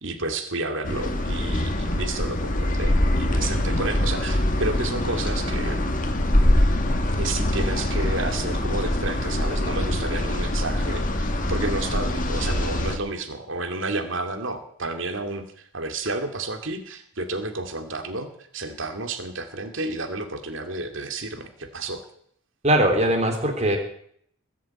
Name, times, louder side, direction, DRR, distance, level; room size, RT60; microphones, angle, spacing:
voice 1, 0.0-5.9 7.1-22.0, right 2 dB, 65° right, 6 dB, 2.4 m, -31 dB
Binaural Outside Ambience, 0.8-13.0, left 1 dB, 40° left, 1.9 m, -24 dB
voice 2, 22.6-23.8, right 1 dB, 30° right, 3 dB, 3.4 m, -20 dB
20.5 x 7.7 x 8.8 m, 0.65 s
head